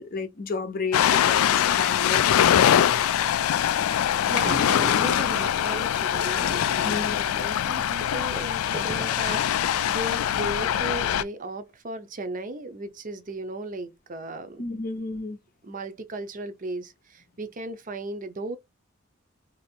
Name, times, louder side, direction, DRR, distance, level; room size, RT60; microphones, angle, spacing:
voice 1, 0.0-2.9 4.2-4.6 6.8-7.4 14.6-15.4, left 4 dB, 45° left, 0.6 m, -33 dB
Ocean, 0.9-11.2, left 10 dB, 90° left, 0.3 m, -23 dB
sound 1, 3.2-3.6 4.0-4.1 4.4-5.5 6.1-6.8 7.1-7.2 7.7-7.8 8.0-9.9 10.3-10.4, right 1 dB, 5° left, 0.9 m, -37 dB
voice 2, 4.3-14.6 15.6-18.6, right 2 dB, 40° right, 0.5 m, -36 dB
2.9 x 2.6 x 4.2 m
head